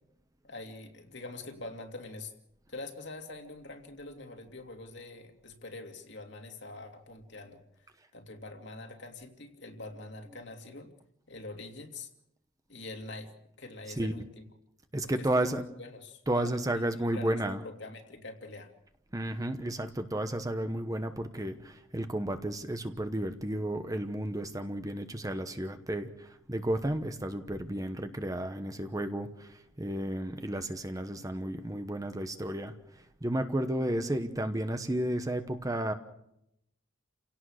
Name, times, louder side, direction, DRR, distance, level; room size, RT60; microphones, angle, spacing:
voice 1, 0.4-2.3 2.7-7.6 8.1-10.9 11.3-12.1 12.7-13.3 13.6-14.4 15.0-16.6 17.1-18.7, left 2 dB, 55° left, 4 dB, 2.7 m, -44 dB
voice 2, 14.9-15.6 16.3-17.6 19.1-32.7 33.2-35.9, right 1 dB, 15° right, 8 dB, 1.0 m, -32 dB
29.5 x 17.5 x 6.5 m, 0.82 s
head